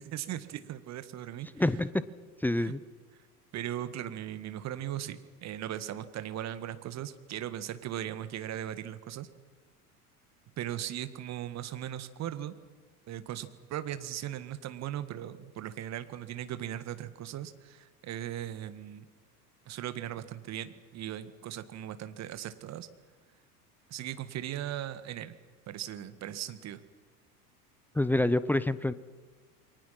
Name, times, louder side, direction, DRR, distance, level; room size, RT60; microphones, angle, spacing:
voice 1, 0.0-1.5 2.6-2.7 3.5-9.3 10.6-12.5 13.1-19.1 19.7-22.9 23.9-25.4 25.7-26.8, right 11 dB, 35° right, 11 dB, 1.8 m, -38 dB
voice 2, 1.6-2.0 2.4-2.8 27.9-28.9, left 1 dB, 5° left, 15 dB, 0.6 m, -27 dB
29.0 x 23.0 x 5.9 m, 1.4 s
figure-of-eight pair, 75°, 46 cm